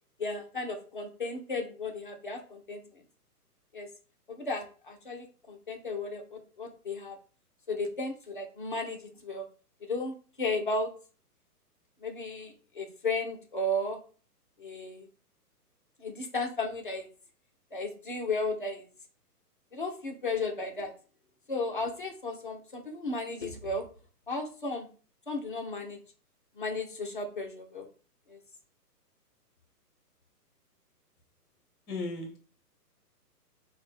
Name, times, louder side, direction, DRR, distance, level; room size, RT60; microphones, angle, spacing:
voice 1, 0.2-2.8 3.7-3.9 4.3-7.2 7.7-9.5 9.9-10.9 12.0-14.0 14.6-15.1 16.0-17.1 17.7-18.9 19.7-20.9 21.5-23.9 24.3-24.9 25.3-26.0 26.6-27.9 28.3-28.4, left 2 dB, 35° left, 0.4 m, -34 dB
voice 2, 31.9-32.4, left 2 dB, 20° left, 0.9 m, -35 dB
3.5 x 2.1 x 4.1 m
hypercardioid pair, 150°, 48 cm